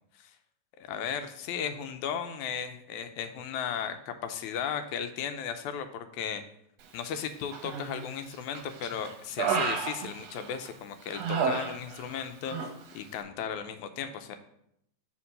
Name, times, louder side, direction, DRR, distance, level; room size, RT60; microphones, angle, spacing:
voice 1, 0.8-6.4 6.9-14.4, left 7 dB, 80° left, 8 dB, 1.9 m, -35 dB
Human voice, 7.5-8.1 8.5-10.7 11.1-12.2 12.5-12.7, right 5 dB, 70° right, 1.7 m, -31 dB
5.8 x 4.4 x 6.4 m, 0.74 s
omnidirectional pair, 3.5 m